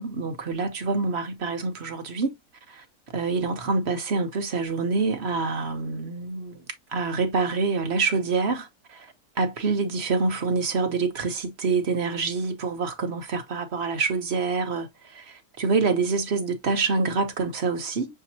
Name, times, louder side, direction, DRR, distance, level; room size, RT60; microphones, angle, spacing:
voice 1, 0.0-2.3 2.7-2.8 3.1-6.6 6.9-9.1 9.4-18.2, right 4 dB, 45° right, 1.0 m, -26 dB
6.7 x 2.9 x 2.7 m
omnidirectional pair, 1.7 m